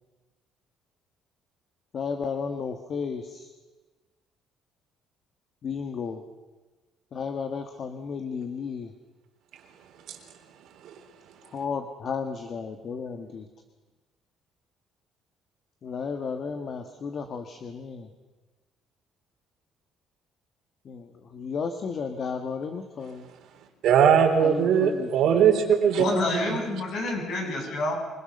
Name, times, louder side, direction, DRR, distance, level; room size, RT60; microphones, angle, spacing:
voice 1, 1.9-3.5 5.6-6.2 7.1-8.9 11.5-13.5 15.8-18.1 20.8-23.3 24.4-25.1, left 5 dB, 45° left, 7 dB, 1.4 m, -33 dB
voice 2, 23.8-26.6, right 7 dB, 70° right, 3 dB, 3.9 m, -21 dB
voice 3, 26.0-27.9, left 2 dB, 65° left, 1 dB, 7.9 m, -28 dB
26.0 x 20.5 x 6.7 m, 1.2 s
cardioid pair, 130°, 0 cm